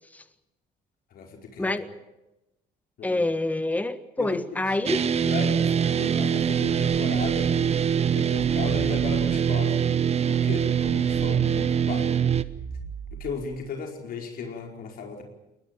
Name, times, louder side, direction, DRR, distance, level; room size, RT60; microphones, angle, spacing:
voice 1, 1.1-1.8 3.0-3.2 4.2-4.7 5.2-7.5 7.8-9.9 10.3-12.1 13.1-15.2, left 5 dB, 60° left, 2 dB, 4.8 m, -36 dB
voice 2, 3.0-5.0, left 2 dB, 10° left, 11 dB, 1.5 m, -27 dB
sound 1, 4.9-12.4, right 8 dB, 40° right, 1.0 m, -23 dB
sound 2, 10.3-13.7, right 6 dB, 80° right, 6.0 m, -40 dB
21.5 x 19.5 x 9.0 m, 0.93 s
cardioid pair, 110°, 17 cm